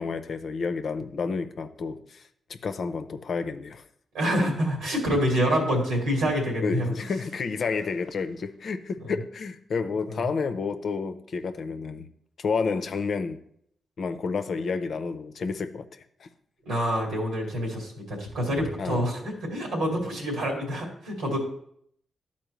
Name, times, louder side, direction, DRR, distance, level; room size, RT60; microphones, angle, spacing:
voice 1, 0.0-2.2 2.6-3.8 6.6-12.1 12.4-13.4 14.0-15.9 16.2-16.3 18.8-19.1, left 5 dB, 65° left, 8 dB, 0.6 m, -30 dB
voice 2, 4.1-6.9 9.0-9.1 10.1-10.2 16.7-21.4, equal, 90° right, -1 dB, 2.2 m, -27 dB
12.0 x 4.3 x 3.1 m, 0.69 s
supercardioid pair, 45°, 0 cm